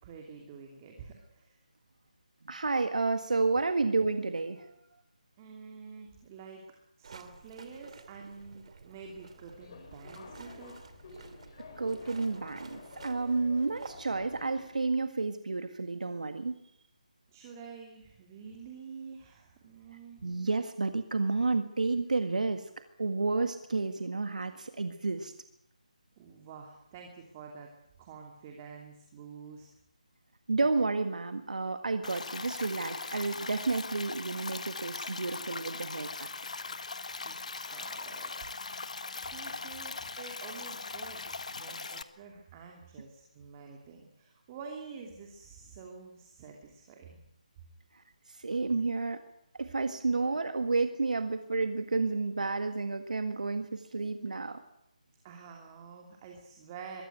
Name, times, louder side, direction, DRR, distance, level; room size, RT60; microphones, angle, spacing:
voice 1, 0.0-1.6 5.4-6.6 7.0-10.8 17.3-20.3 26.2-27.7 28.0-29.7 37.2-38.5 38.8-47.2 50.2-50.4 55.2-57.0, right 5 dB, 25° right, 2 dB, 2.9 m, -48 dB
voice 2, 2.4-4.7 11.8-16.6 20.2-22.7 23.0-25.3 30.5-36.3 47.9-49.2 49.5-54.6, right 3 dB, 70° right, 8 dB, 1.8 m, -31 dB
sound 1, 7.0-14.2, right 4 dB, 50° right, 2.7 m, -52 dB
Subway metro underground, 9.2-14.9, left 3 dB, 40° left, 4.4 m, -51 dB
Stream, 32.0-42.0, left 4 dB, 60° left, 1.6 m, -40 dB
22.5 x 16.0 x 9.3 m, 0.78 s
figure-of-eight pair, 155°, 4 cm